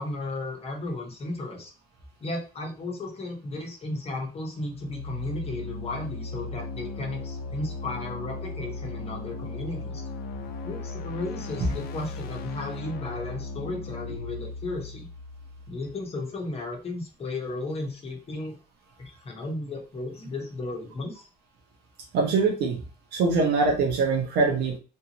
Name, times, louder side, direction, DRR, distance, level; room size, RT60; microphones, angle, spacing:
voice 1, 0.0-1.7 2.2-10.0 10.6-15.1 15.7-18.5 19.0-21.2, left 2 dB, 35° left, 1 dB, 1.2 m, -34 dB
sound 1, 4.6-16.4, left 3 dB, 65° left, 0.6 m, -37 dB
voice 2, 22.1-22.8 23.1-24.8, right 4 dB, 75° right, 2 dB, 1.3 m, -23 dB
3.5 x 2.8 x 2.9 m, 0.33 s
cardioid pair, 110°, 17 cm